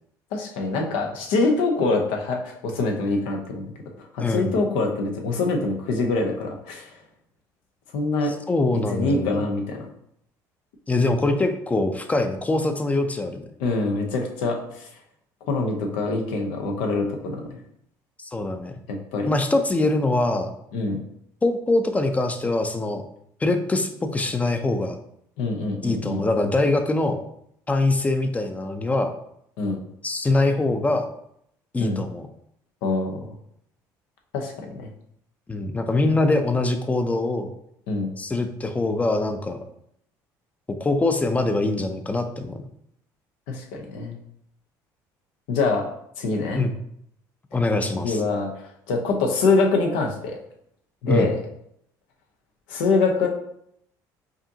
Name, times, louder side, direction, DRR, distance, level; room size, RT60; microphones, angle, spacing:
voice 1, 0.3-3.6 4.1-6.9 7.9-8.3 8.9-9.9 13.6-14.8 15.5-17.6 18.9-19.3 20.7-21.0 25.4-26.2 29.6-29.8 31.8-32.0 32.8-33.3 34.3-34.9 37.9-38.1 43.5-44.2 45.5-45.9 46.2-46.6 48.0-48.5 48.9-50.4 51.0-51.4 52.7-53.3, left 3 dB, 85° left, 2 dB, 0.7 m, -24 dB
voice 2, 4.2-4.5 8.2-9.4 10.9-13.5 18.2-18.8 19.3-20.5 21.4-23.0 23.4-25.0 25.8-27.2 27.7-29.1 30.0-31.1 31.7-32.3 35.5-37.5 38.2-39.6 40.7-42.6 46.6-46.8 47.5-48.2 51.1-51.3, left 2 dB, 15° left, 7 dB, 0.5 m, -23 dB
4.9 x 2.7 x 2.7 m, 0.73 s
supercardioid pair, 90°, 8 cm